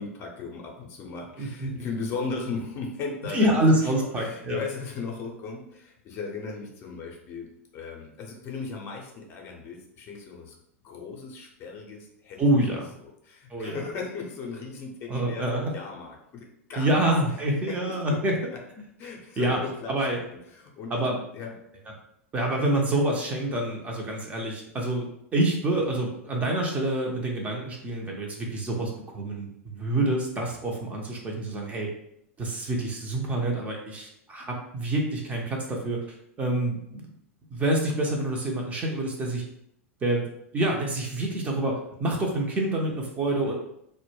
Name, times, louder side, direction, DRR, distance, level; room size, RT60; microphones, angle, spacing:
voice 1, 0.0-3.6 3.8-3.9 4.2-7.5 7.7-10.5 10.8-12.4 13.2-17.0 17.7-18.2 19.0-21.0 21.3-21.5, left 4 dB, 35° left, 0 dB, 0.5 m, -37 dB
voice 2, 1.4-1.7 3.3-4.6 12.4-12.9 13.5-13.8 15.1-15.7 16.8-18.4 19.4-19.6 19.9-20.2 20.9-21.2 22.3-25.1 25.3-31.9 32.4-36.0 36.4-37.1 37.5-39.4 40.0-40.3 40.5-43.5, right 1 dB, 20° right, 0 dB, 0.5 m, -27 dB
2.1 x 2.1 x 3.1 m, 0.75 s
figure-of-eight pair, 90°, 7 cm